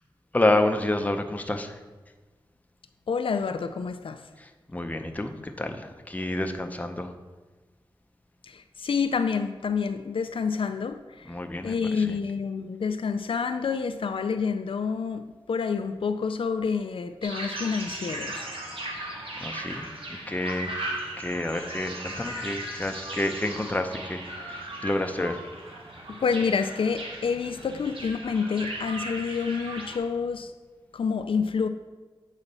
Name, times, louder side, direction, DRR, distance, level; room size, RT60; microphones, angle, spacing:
voice 1, 0.3-1.7 4.7-7.1 11.3-11.7 19.4-19.9 20.3-20.7 21.2-24.6 24.8-25.4, left 1 dB, 15° left, 6 dB, 0.6 m, -28 dB
voice 2, 3.1-4.2 8.5-11.3 11.6-18.5 26.1-30.5 30.9-31.7, left 5 dB, 75° left, 9 dB, 0.4 m, -28 dB
sound 1, 17.2-30.0, right 1 dB, 75° right, 1.3 m, -37 dB
8.2 x 4.0 x 5.4 m, 1.3 s
wide cardioid pair, 95°, 9 cm